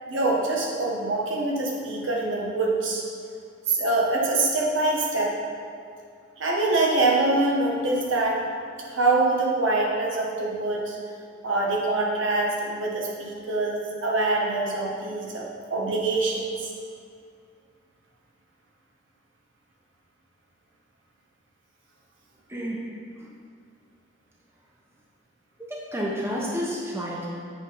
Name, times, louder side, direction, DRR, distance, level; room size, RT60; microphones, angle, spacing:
voice 1, 0.1-3.0 3.7-5.4 6.4-8.4 8.9-11.0 11.4-16.7, right 2 dB, 85° right, -2 dB, 1.3 m, -24 dB
voice 2, 25.7-27.3, equal, 15° right, -5 dB, 1.0 m, -30 dB
8.0 x 4.5 x 5.5 m, 2.2 s
head